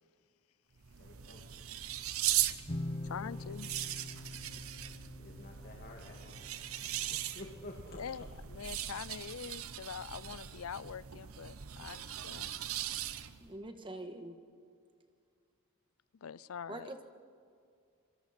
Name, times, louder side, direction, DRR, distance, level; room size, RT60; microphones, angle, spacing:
sound 1, 0.8-13.5, right 12 dB, 70° right, 0.9 m, -39 dB
voice 1, 1.0-1.7 4.8-6.5 6.8-8.1, left 2 dB, 45° left, 0 dB, 2.2 m, -51 dB
sound 2, 2.7-8.3, left 1 dB, 30° left, 0.9 m, -45 dB
voice 2, 3.0-3.7 8.0-12.5 16.2-16.9, left 7 dB, 70° left, 19 dB, 0.5 m, -44 dB
voice 3, 13.4-14.4 16.7-17.0, right 1 dB, 25° right, 6 dB, 1.5 m, -44 dB
26.0 x 23.0 x 4.4 m, 2.2 s
head